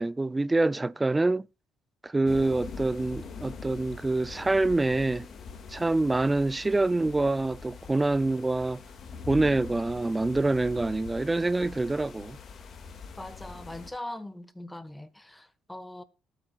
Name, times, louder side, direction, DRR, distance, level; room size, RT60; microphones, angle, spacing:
voice 1, 0.0-1.5 2.0-5.3 5.7-8.8 9.3-12.4, right 2 dB, 20° right, 0.4 m, -26 dB
sound 1, 2.3-13.9, left 5 dB, 50° left, 2.0 m, -43 dB
voice 2, 13.2-16.0, left 1 dB, 10° left, 1.3 m, -41 dB
19.0 x 8.9 x 2.4 m
supercardioid pair, 65°, 0 cm